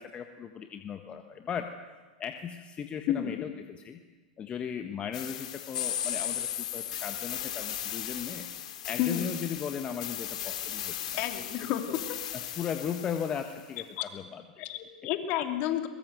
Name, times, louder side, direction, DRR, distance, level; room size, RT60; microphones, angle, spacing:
voice 1, 0.0-1.7 2.2-4.0 4.4-8.5 8.8-10.9 11.7-12.0 12.3-14.7, left 8 dB, 30° left, 6 dB, 1.5 m, -37 dB
voice 2, 3.1-3.4 9.0-9.3 11.2-11.8 12.1-12.2 14.0-14.1 14.6-15.9, left 11 dB, 50° left, 6 dB, 2.8 m, -31 dB
sound 1, 5.1-13.6, left 11 dB, 70° left, 2.6 m, -36 dB
23.0 x 21.0 x 8.0 m, 1.3 s
hypercardioid pair, 100°, 4 cm